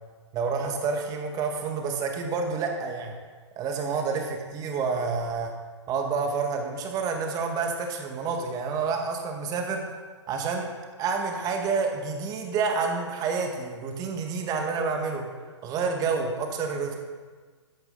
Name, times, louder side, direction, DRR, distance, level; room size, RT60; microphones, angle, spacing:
voice 1, 0.3-3.1 3.6-5.5 5.9-9.8 10.3-10.7 11.0-15.3 15.6-17.0, right 5 dB, 25° right, 3 dB, 2.0 m, -28 dB
14.5 x 10.5 x 4.1 m, 1.5 s
figure-of-eight pair, 125°, 15 cm